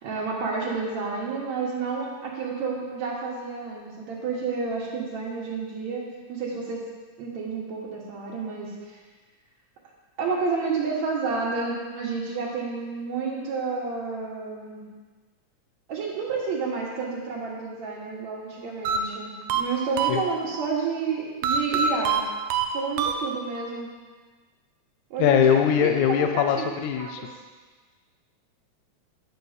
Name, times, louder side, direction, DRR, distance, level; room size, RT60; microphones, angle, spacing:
voice 1, 0.0-6.0 6.3-6.8 7.2-8.7 10.2-14.8 15.9-22.2 22.7-23.9 25.1-27.3, right 4 dB, 70° right, -3 dB, 2.6 m, -30 dB
sound 1, 18.8-20.7 21.4-23.7, right 6 dB, 85° right, 1.4 m, -26 dB
voice 2, 25.2-27.2, left 8 dB, 80° left, 5 dB, 1.9 m, -21 dB
10.5 x 4.6 x 6.5 m, 1.4 s
omnidirectional pair, 3.4 m